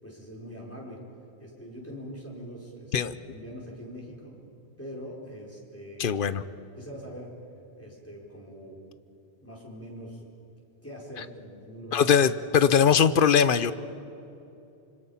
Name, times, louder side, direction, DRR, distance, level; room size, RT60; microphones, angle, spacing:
voice 1, 0.0-1.0 1.4-4.4 4.8-6.1 6.8-7.3 7.8-8.8 9.4-10.2 10.8-12.1 12.6-12.8, equal, 10° left, -3 dB, 4.6 m, -43 dB
voice 2, 6.0-6.4 11.9-13.7, left 7 dB, 55° left, 14 dB, 0.8 m, -21 dB
26.0 x 25.5 x 5.7 m, 2.8 s
omnidirectional pair, 1.2 m